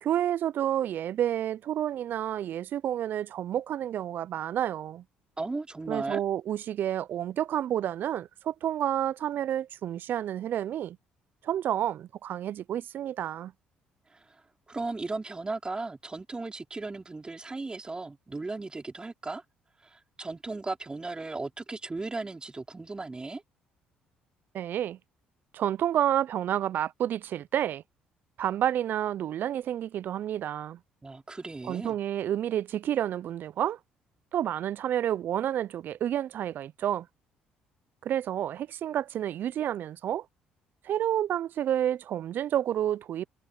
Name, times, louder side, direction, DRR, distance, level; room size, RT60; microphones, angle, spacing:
voice 1, 0.0-5.0 5.9-11.0 11.4-13.5 24.5-25.0 25.5-27.8 28.4-30.8 31.6-33.8 34.3-37.1 38.0-40.3 40.8-43.3, right 11 dB, 60° right, 0.5 m, -29 dB
voice 2, 5.4-6.2 14.1-14.4 14.7-19.4 19.8-23.4 31.0-31.9, right 3 dB, 25° right, 4.3 m, -36 dB
hypercardioid pair, 55°, 4 cm